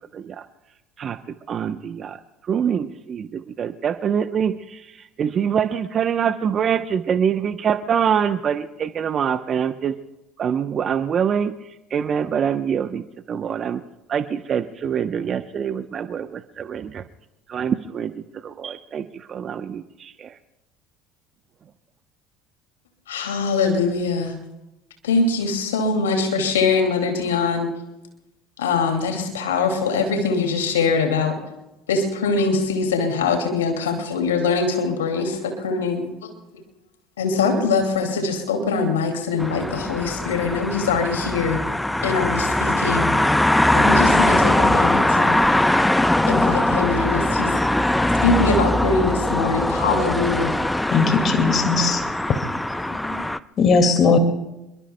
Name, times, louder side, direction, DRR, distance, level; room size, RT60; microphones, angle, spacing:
voice 1, 0.1-0.5 1.0-10.0 10.4-13.8 14.1-17.0 17.5-20.4, right 8 dB, 40° right, 10 dB, 0.8 m, -25 dB
voice 2, 23.1-24.4 25.0-27.7 28.6-31.4 31.9-36.1 37.2-41.6 42.0-43.2 43.7-45.4 46.3-47.5 48.2-50.5 52.9-53.2, left 4 dB, 85° left, 4 dB, 2.3 m, -22 dB
sound 1, 39.4-53.4, left 1 dB, 5° left, 0.7 m, -21 dB
voice 3, 50.9-52.0 52.3-52.4 53.6-54.2, left 4 dB, 45° left, 6 dB, 2.1 m, -18 dB
27.5 x 22.5 x 2.2 m, 0.95 s
hypercardioid pair, 70°, 0 cm